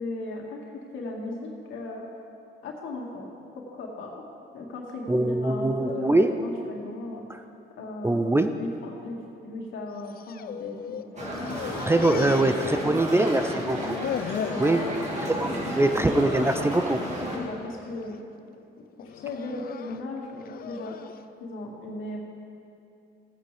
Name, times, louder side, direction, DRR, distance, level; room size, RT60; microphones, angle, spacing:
voice 1, 0.0-2.0 2.6-3.3 3.6-4.2 4.5-7.3 7.8-13.6 14.4-15.0 15.4-16.3 17.3-18.2 19.0-21.0 21.4-22.2, left 2 dB, 80° left, -1 dB, 2.0 m, -37 dB
voice 2, 5.1-6.3 8.0-8.5 11.9-14.0 14.6-14.8 15.3-17.0, right 2 dB, 10° right, 8 dB, 0.5 m, -23 dB
sound 1, 10.0-11.1 11.4-13.2 13.5-14.7 15.2-15.5 15.9-16.0 16.9-17.3 17.8-18.2 19.0-21.2, left 9 dB, 50° left, 0.4 m, -36 dB
sound 2, 11.2-17.4, equal, 35° right, 2.3 m, -32 dB
15.5 x 9.0 x 3.4 m, 2.6 s
cardioid pair, 90°, 20 cm